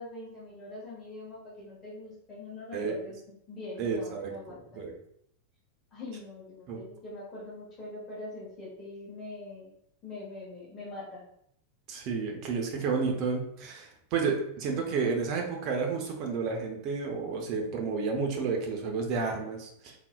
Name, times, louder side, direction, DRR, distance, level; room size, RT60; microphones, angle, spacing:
voice 1, 0.0-3.2 3.5-4.8 5.9-9.7 10.0-11.2, left 2 dB, 25° left, -6 dB, 1.2 m, -43 dB
voice 2, 3.8-4.9 6.7-6.8 11.9-19.9, right 5 dB, 40° right, 2 dB, 0.7 m, -31 dB
3.8 x 2.7 x 2.2 m, 0.71 s
figure-of-eight pair, 90°, 0 cm